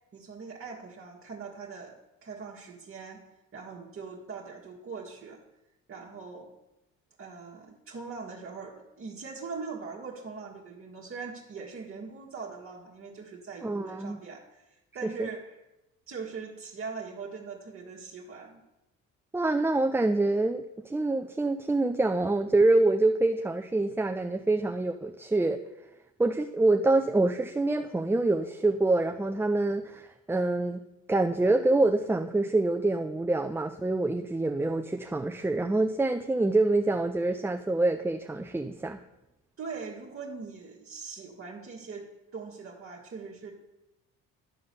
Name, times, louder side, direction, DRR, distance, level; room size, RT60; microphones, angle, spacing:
voice 1, 0.1-5.4 5.9-6.5 7.2-15.5 16.1-18.6 39.6-43.5, right 5 dB, 40° right, -3 dB, 1.5 m, -41 dB
voice 2, 13.6-14.2 15.2-15.3 19.3-25.6 26.2-30.8 31.1-39.0, right 2 dB, 5° right, 6 dB, 0.4 m, -26 dB
11.5 x 3.9 x 6.6 m, 0.95 s
supercardioid pair, 75°, 32 cm